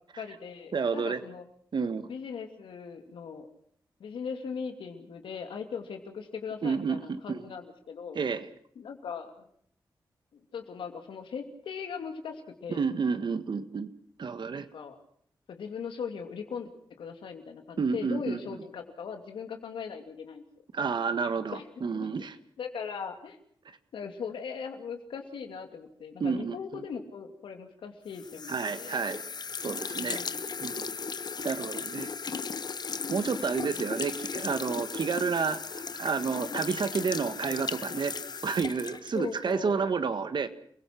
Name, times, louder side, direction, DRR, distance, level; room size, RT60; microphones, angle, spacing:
voice 1, 0.2-1.4 2.1-3.5 4.0-8.2 8.8-9.5 10.3-12.9 14.5-15.0 15.5-16.7 17.0-20.4 21.5-21.7 22.0-22.2 22.6-23.4 23.9-29.0 30.0-30.7 33.7-33.9 39.1-39.9, left 6 dB, 85° left, 6 dB, 2.7 m, -39 dB
voice 2, 0.7-1.2 1.7-2.1 6.6-7.4 8.2-8.5 12.7-13.9 14.2-14.7 17.8-18.6 20.7-22.3 26.2-26.8 28.5-29.2 29.6-30.2 30.6-30.9 31.4-32.1 33.1-40.5, right 5 dB, 65° right, 11 dB, 1.6 m, -30 dB
sound 1, 28.1-39.6, left 5 dB, 55° left, 0.9 m, -36 dB
29.0 x 17.0 x 6.0 m, 0.65 s
cardioid pair, 50°, 8 cm